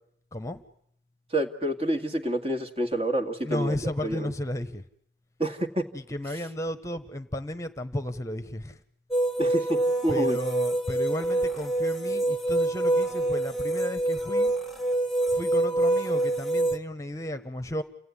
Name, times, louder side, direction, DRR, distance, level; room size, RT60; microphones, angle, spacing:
voice 1, 1.3-4.3 5.4-5.9 6.3-6.5 9.4-10.4, right 1 dB, 35° right, 7 dB, 2.1 m, -28 dB
voice 2, 3.4-4.8 5.9-8.6 10.1-14.5 15.4-17.8, equal, 15° left, 11 dB, 1.1 m, -33 dB
sound 1, 9.1-16.8, right 1 dB, ahead, 1.6 m, -26 dB
29.5 x 17.5 x 9.9 m, 0.72 s
head